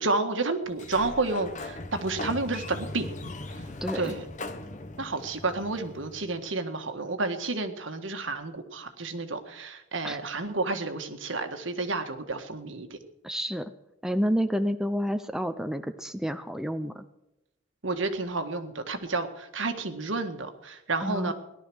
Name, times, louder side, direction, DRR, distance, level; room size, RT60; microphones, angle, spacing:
voice 1, 0.0-3.1 3.9-4.2 5.0-13.0 17.8-21.3, right 3 dB, 75° right, 7 dB, 1.7 m, -30 dB
Sliding door, 0.7-6.4, left 2 dB, 40° left, 1.2 m, -39 dB
voice 2, 3.8-4.1 10.0-10.2 13.2-13.7 14.0-17.0 21.0-21.3, equal, 5° right, 9 dB, 0.6 m, -29 dB
17.5 x 12.0 x 6.3 m, 0.90 s
head